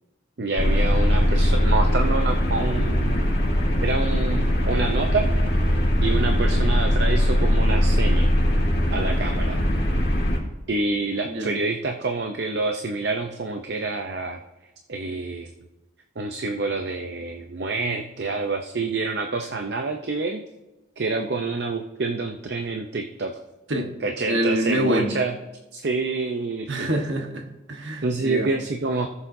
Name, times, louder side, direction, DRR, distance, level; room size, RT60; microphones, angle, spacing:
voice 1, 0.4-3.3 3.8-5.3 6.0-8.3 8.9-9.6 10.7-14.4 14.9-15.5 16.2-20.4 21.0-23.4 24.0-25.4 25.7-26.9 28.0-29.1, right 3 dB, 60° right, 4 dB, 0.6 m, -27 dB
sound 1, 0.6-10.4, equal, 60° left, 2.1 m, -21 dB
voice 2, 24.3-25.1 26.7-28.5, right 1 dB, 85° right, 3 dB, 1.3 m, -25 dB
18.5 x 7.0 x 2.7 m, 1.0 s
head